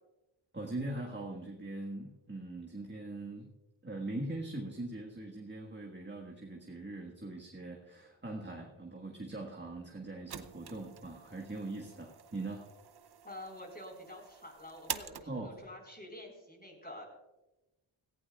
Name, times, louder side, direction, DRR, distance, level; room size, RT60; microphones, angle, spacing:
voice 1, 0.5-3.5 3.8-12.6 15.3-15.6, right 2 dB, 20° right, 0 dB, 1.6 m, -41 dB
sound 1, 9.6-15.7, right 8 dB, 50° right, 0.7 m, -47 dB
voice 2, 13.2-17.1, left 1 dB, 20° left, 0 dB, 4.7 m, -48 dB
17.0 x 15.5 x 2.4 m, 1.0 s
wide cardioid pair, 75°, 50 cm